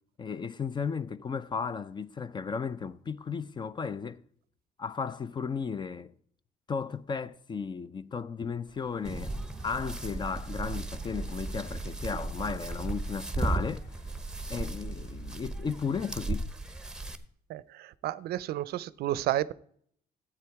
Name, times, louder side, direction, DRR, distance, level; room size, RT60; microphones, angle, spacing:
voice 1, 0.2-4.2 4.8-6.1 6.7-9.3 9.6-13.9 14.5-16.5, left 5 dB, 25° left, 0.4 m, -34 dB
sound 1, 8.7-15.4, left 1 dB, 85° left, 4.1 m, -54 dB
sound 2, 9.0-17.1, right 2 dB, 5° right, 0.9 m, -35 dB
voice 2, 17.5-19.5, right 13 dB, 70° right, 0.5 m, -31 dB
12.5 x 8.7 x 4.7 m
cardioid pair, 110°, 17 cm